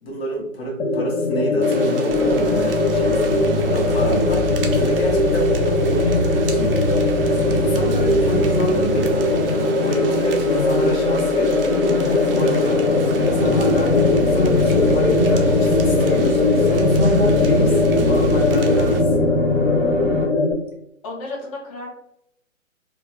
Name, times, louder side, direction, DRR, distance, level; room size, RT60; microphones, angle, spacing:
voice 1, 0.0-19.3, right 1 dB, 50° left, -1 dB, 1.2 m, -27 dB
sound 1, 0.8-20.5, left 3 dB, 65° left, 0.7 m, -20 dB
sound 2, 1.6-19.0, right 5 dB, 45° right, 0.5 m, -35 dB
sound 3, 2.1-20.3, right 1 dB, 20° right, 0.9 m, -25 dB
voice 2, 21.0-21.9, left 2 dB, 25° left, -1 dB, 0.8 m, -32 dB
3.5 x 2.3 x 3.0 m, 0.77 s
figure-of-eight pair, 130°, 40 cm